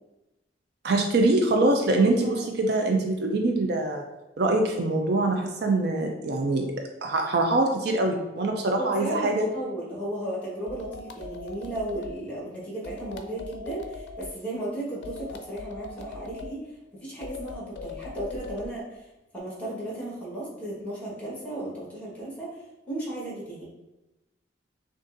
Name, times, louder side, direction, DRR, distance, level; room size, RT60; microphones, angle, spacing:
voice 1, 0.8-4.0 4.4-6.7 7.0-9.4, right 2 dB, 60° right, 2 dB, 0.5 m, -24 dB
voice 2, 8.8-16.6 17.0-19.0 19.3-23.7, right 1 dB, 10° left, -6 dB, 1.4 m, -35 dB
sound 1, 10.7-12.2 12.8-14.4 15.0-16.6 17.2-18.7, left 4 dB, 75° left, 0.4 m, -40 dB
6.2 x 2.5 x 2.6 m, 0.99 s
head